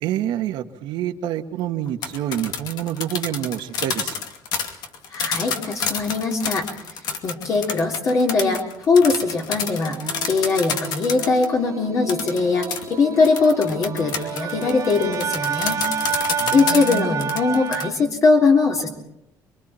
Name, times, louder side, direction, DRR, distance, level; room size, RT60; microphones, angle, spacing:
voice 1, 0.0-4.2 16.4-17.1, right 11 dB, 85° right, 5 dB, 1.7 m, -27 dB
sound 1, 1.9-11.5 12.1-17.8, left 6 dB, 70° left, 2.5 m, -28 dB
voice 2, 5.1-6.6 7.2-8.6 8.9-10.0 10.3-15.8 16.5-18.9, left 4 dB, 45° left, 0 dB, 3.5 m, -20 dB
sound 2, 9.9-17.9, right 7 dB, 45° right, 1.6 m, -30 dB
29.0 x 23.5 x 4.4 m, 0.82 s
cardioid pair, 140°, 8 cm